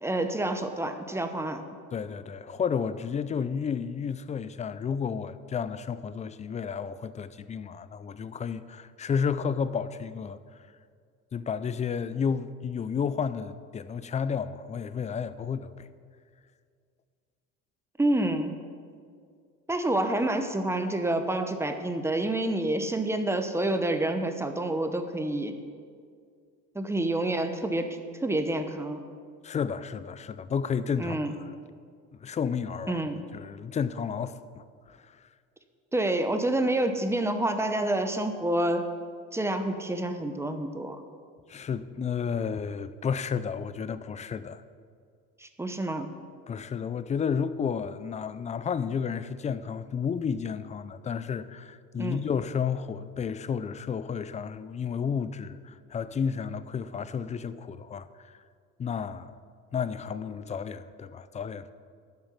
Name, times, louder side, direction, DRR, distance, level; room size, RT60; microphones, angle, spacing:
voice 1, 0.0-1.6 18.0-18.6 19.7-25.5 26.7-29.0 31.0-31.3 32.9-33.2 35.9-38.9 39.3-41.0 45.4-46.1 52.0-52.2, right 1 dB, 10° right, 0.9 m, -28 dB
voice 2, 1.9-10.4 11.3-15.9 29.4-31.2 31.4-31.5 32.2-33.0 33.3-35.0 41.5-44.6 46.5-58.4 58.8-59.4 59.7-61.7, left 6 dB, 20° left, 0.4 m, -32 dB
10.5 x 7.9 x 7.2 m
cardioid pair, 115°, 33 cm